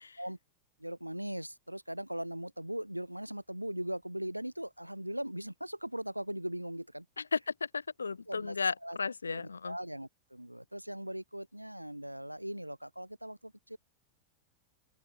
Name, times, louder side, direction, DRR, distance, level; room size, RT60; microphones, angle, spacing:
voice 1, 0.8-7.1 8.3-8.6 8.8-9.0 9.3-13.8, right 1 dB, 90° right, 2.1 m, -39 dB
voice 2, 7.2-9.8, left 5 dB, 75° left, 3.9 m, -34 dB
open air
figure-of-eight pair, 90°, 0 cm